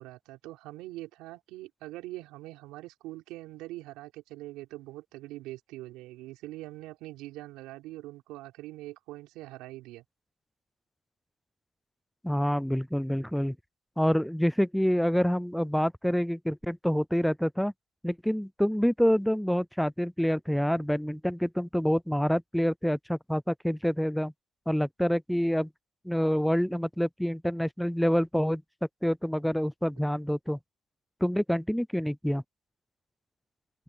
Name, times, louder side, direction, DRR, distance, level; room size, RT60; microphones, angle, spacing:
voice 1, 0.0-10.0, right 17 dB, 85° right, 4.4 m, -43 dB
voice 2, 12.2-13.6 14.0-17.7 18.0-24.3 24.7-25.7 26.0-28.6 29.0-30.6 31.2-32.4, equal, ahead, 0.4 m, -27 dB
cardioid pair, 155°, 0 cm